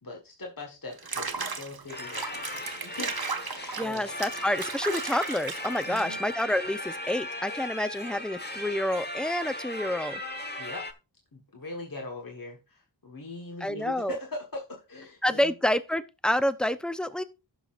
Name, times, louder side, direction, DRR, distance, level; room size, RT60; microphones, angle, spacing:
voice 1, 0.0-4.0 5.9-6.2 10.6-10.9 11.3-15.5, left 2 dB, 45° left, 1.6 m, -41 dB
Water / Bathtub (filling or washing), 0.9-6.4, right 4 dB, 55° right, 1.1 m, -36 dB
sound 1, 1.9-10.9, left 1 dB, 20° left, 1.2 m, -37 dB
voice 2, 3.8-10.2 13.6-14.2 15.2-17.2, left 1 dB, ahead, 0.6 m, -28 dB
16.0 x 5.8 x 2.5 m
wide cardioid pair, 45°, 45 cm